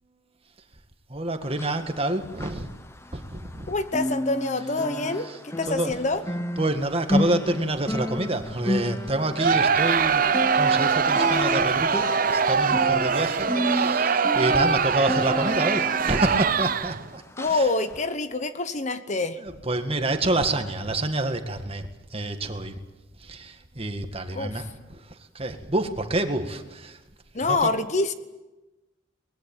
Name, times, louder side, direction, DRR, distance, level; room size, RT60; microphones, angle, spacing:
voice 1, 1.1-2.7 3.1-3.7 5.2-5.4 5.7-6.0 6.6-17.7 19.4-22.8 23.2-27.0 27.4-27.7, right 2 dB, 30° right, 7 dB, 1.9 m, -28 dB
sound 1, 1.4-3.6 3.9-17.0 17.4-17.6 18.1-18.2, left 1 dB, 15° left, 1.0 m, -31 dB
voice 2, 3.7-6.2 17.4-19.4 24.3-24.5 27.3-28.1, left 3 dB, 40° left, 11 dB, 1.1 m, -26 dB
Crowd, 9.4-17.1, right 6 dB, 45° right, 0.8 m, -23 dB
24.0 x 20.5 x 9.1 m, 1.1 s
head